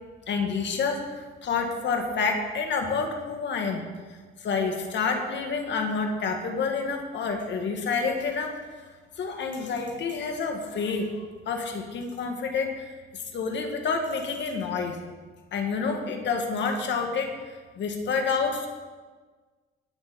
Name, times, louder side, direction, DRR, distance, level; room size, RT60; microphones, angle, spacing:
voice 1, 0.3-3.9 4.4-8.5 9.2-11.1 11.5-15.0 15.5-17.3 17.8-18.7, left 5 dB, 65° left, 3 dB, 1.8 m, -28 dB
19.0 x 6.3 x 4.2 m, 1.4 s
cardioid pair, 90°, 20 cm